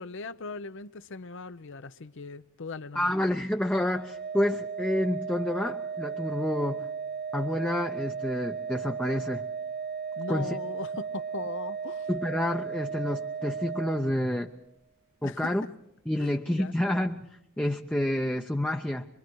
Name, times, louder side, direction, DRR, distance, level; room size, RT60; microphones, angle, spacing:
voice 1, 0.0-3.1 10.2-12.1 15.2-15.5 16.2-16.7, left 3 dB, 60° left, 0.7 m, -39 dB
voice 2, 2.9-6.9 7.3-9.4 10.3-10.5 12.1-14.5 15.2-15.6 16.1-19.1, left 1 dB, 5° left, 0.7 m, -29 dB
Organ, 3.9-14.6, right 6 dB, 50° right, 1.3 m, -36 dB
24.5 x 23.5 x 4.6 m
head